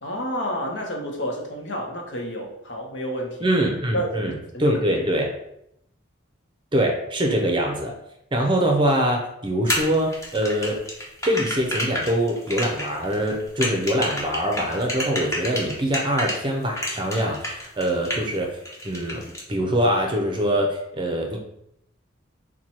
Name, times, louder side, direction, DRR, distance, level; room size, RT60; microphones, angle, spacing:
voice 1, 0.0-3.5 3.9-4.8, equal, 60° left, 1 dB, 0.9 m, -30 dB
voice 2, 3.4-4.3 4.6-5.3 6.7-7.9 8.3-10.8 11.2-18.5 18.8-19.2 19.5-21.4, equal, 25° right, 2 dB, 0.6 m, -23 dB
sound 1, 9.7-16.4 16.8-18.4 18.7-19.4, left 1 dB, 15° left, 0.7 m, -29 dB
4.5 x 2.2 x 4.2 m, 0.78 s
head